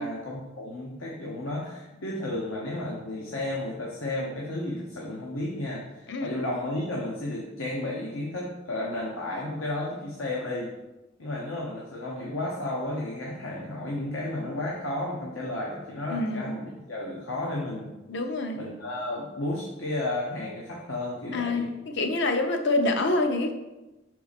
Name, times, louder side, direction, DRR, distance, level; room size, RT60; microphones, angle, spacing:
voice 1, 0.0-10.7 11.2-17.9 18.5-21.7, left 1 dB, 80° left, -3 dB, 0.9 m, -33 dB
voice 2, 16.1-16.5 18.1-18.6 21.3-21.7 21.9-23.5, left 2 dB, 60° left, 6 dB, 0.7 m, -26 dB
5.9 x 4.5 x 4.1 m, 1.0 s
head